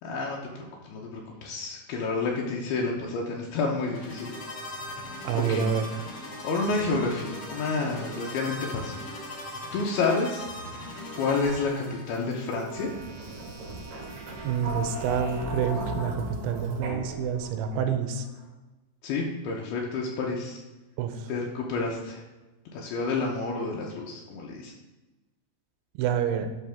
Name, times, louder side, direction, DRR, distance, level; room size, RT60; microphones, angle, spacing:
voice 1, 0.0-4.3 5.4-5.7 6.4-9.0 9.7-10.5 11.1-12.9 19.0-20.6 21.3-22.2 22.7-24.7, left 3 dB, 80° left, -2 dB, 2.7 m, -29 dB
sound 1, 3.8-12.3, left 1 dB, 40° left, 2.4 m, -39 dB
voice 2, 5.2-5.9 14.4-18.3 21.0-21.3 26.0-26.5, right 8 dB, 85° right, 8 dB, 2.6 m, -28 dB
sound 2, 11.4-18.2, right 1 dB, 60° right, 3.4 m, -37 dB
12.0 x 4.7 x 3.5 m, 1.1 s
omnidirectional pair, 4.6 m